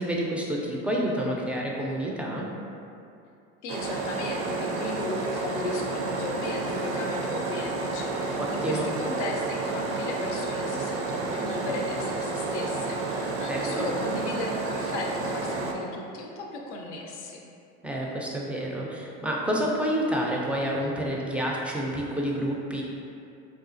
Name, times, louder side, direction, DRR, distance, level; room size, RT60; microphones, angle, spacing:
voice 1, 0.0-2.5 8.4-8.9 13.5-13.9 17.8-22.8, equal, 5° right, -3 dB, 0.3 m, -29 dB
voice 2, 3.6-17.4, left 2 dB, 90° left, 1 dB, 0.5 m, -36 dB
sound 1, 3.7-15.7, right 3 dB, 80° right, 0.5 m, -30 dB
3.7 x 2.3 x 2.5 m, 2.6 s
supercardioid pair, 90°, 33 cm